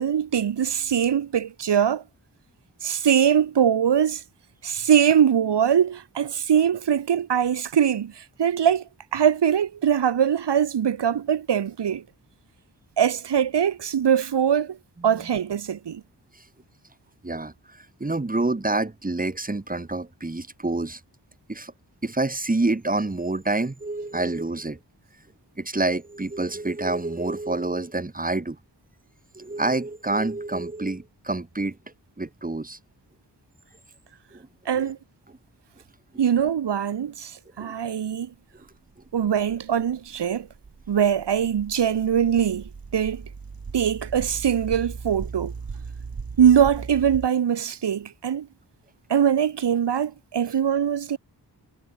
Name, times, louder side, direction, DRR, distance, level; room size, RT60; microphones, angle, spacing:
voice 1, 0.0-2.0 2.8-4.2 4.6-8.8 9.1-12.0 13.0-14.8 15.0-16.0 34.7-35.0 36.2-38.3 39.1-40.5 40.9-43.2 43.7-45.5 46.4-48.5 49.1-51.2, right 8 dB, 80° right, 1.0 m, -22 dB
voice 2, 17.2-21.0 21.5-21.7 22.0-24.8 25.6-28.6 29.3-31.8 32.2-32.8 34.3-34.5 34.8-34.9 37.6-37.7, right 2 dB, 20° right, 1.4 m, -27 dB
sound 1, 38.7-47.3, right 5 dB, 55° right, 2.6 m, -38 dB
wide cardioid pair, 90°, 41 cm